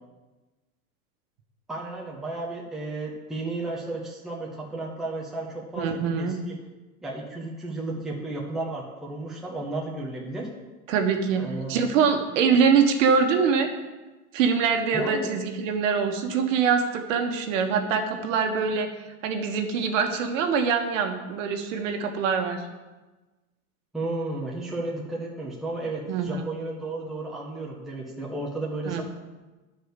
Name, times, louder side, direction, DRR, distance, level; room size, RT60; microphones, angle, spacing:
voice 1, 1.7-6.6 7.0-10.5 11.4-11.8 14.9-15.3 23.9-29.0, right 2 dB, ahead, -3 dB, 0.8 m, -33 dB
voice 2, 5.8-6.4 10.9-11.4 11.7-13.7 14.3-18.9 19.2-22.6 26.1-26.3 28.8-29.0, right 6 dB, 60° right, 5 dB, 1.4 m, -24 dB
11.0 x 4.7 x 6.6 m, 1.2 s
supercardioid pair, 170°, 42 cm